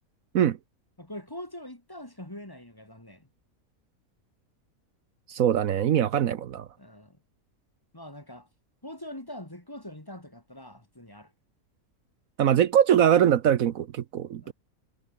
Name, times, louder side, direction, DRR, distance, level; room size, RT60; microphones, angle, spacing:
voice 1, 1.0-3.3 6.8-7.2 7.9-8.5 8.8-11.3 14.4-14.5, left 1 dB, 15° left, 2.5 m, -43 dB
voice 2, 5.3-6.7 12.4-14.5, right 10 dB, 70° right, 1.2 m, -22 dB
omnidirectional pair, 1.6 m